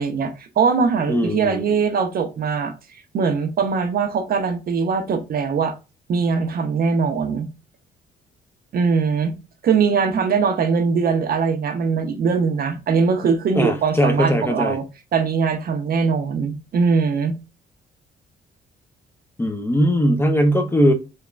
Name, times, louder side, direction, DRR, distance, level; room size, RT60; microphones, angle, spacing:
voice 1, 0.0-2.7 3.1-5.7 6.1-7.5 8.7-9.3 9.6-14.8 15.1-17.3, right 5 dB, 50° right, 0.5 m, -21 dB
voice 2, 1.1-1.6 13.5-14.8 19.4-20.9, equal, 10° left, 0.4 m, -19 dB
3.0 x 2.1 x 2.4 m
cardioid pair, 90°, 20 cm